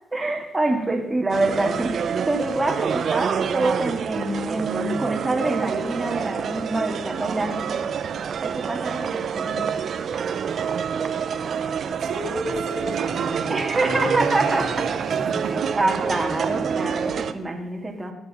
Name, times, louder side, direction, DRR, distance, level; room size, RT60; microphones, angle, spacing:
voice 1, 0.1-7.8 8.4-9.7 13.5-14.7 15.8-18.1, right 2 dB, 15° right, 2 dB, 2.1 m, -26 dB
sound 1, 1.3-17.3, right 7 dB, 55° right, 0.8 m, -27 dB
voice 2, 12.0-15.9, right 3 dB, 85° right, 2 dB, 2.2 m, -31 dB
18.5 x 7.1 x 5.5 m, 1.0 s
cardioid pair, 90°, 0 cm